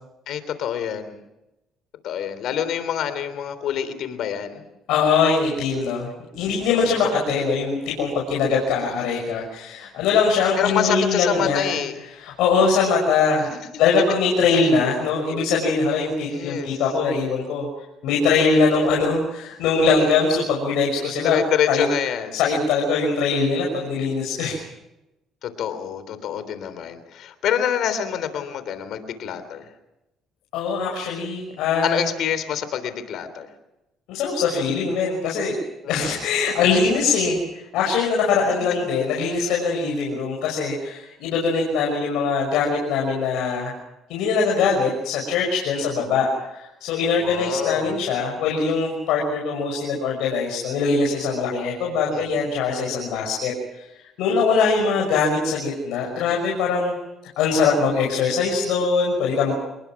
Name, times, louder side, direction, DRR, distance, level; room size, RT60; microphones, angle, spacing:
voice 1, 0.3-1.2 2.0-4.7 7.0-7.1 10.6-12.0 16.2-16.8 21.2-22.4 25.4-29.6 31.8-33.5 35.8-36.2 45.8-46.1 47.2-47.9 52.1-52.2, left 9 dB, 70° left, 11 dB, 3.5 m, -26 dB
voice 2, 4.9-11.7 12.2-13.5 13.8-17.7 18.0-21.4 21.7-21.8 22.3-24.6 30.5-32.1 34.1-35.6 35.9-43.7 44.1-53.5 54.2-56.9 57.4-59.5, left 4 dB, 85° left, -1 dB, 5.8 m, -22 dB
27.5 x 21.5 x 6.0 m, 0.93 s
cardioid pair, 105°, 0 cm